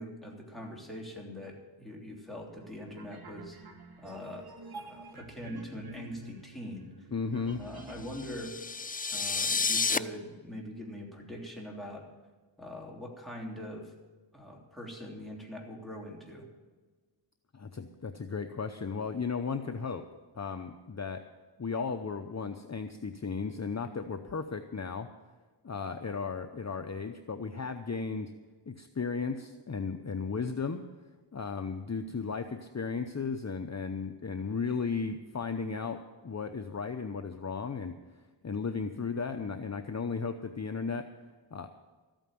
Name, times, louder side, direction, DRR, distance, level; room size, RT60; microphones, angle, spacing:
voice 1, 0.0-3.6 4.0-4.5 4.7-6.9 7.5-8.6 9.1-12.0 12.6-13.9 14.3-16.5, equal, ahead, -1 dB, 3.3 m, -43 dB
sound 1, 2.5-8.4, right 2 dB, 50° right, 1.7 m, -49 dB
voice 2, 7.1-7.6 17.5-20.0 20.3-21.2 21.6-25.1 25.6-28.3 28.7-30.9 31.3-38.0 38.4-41.1 41.5-41.7, left 5 dB, 35° left, 6 dB, 0.7 m, -35 dB
sound 2, 8.1-10.0, left 4 dB, 20° left, 0.4 m, -30 dB
13.5 x 9.1 x 7.6 m, 1.3 s
wide cardioid pair, 85°, 45 cm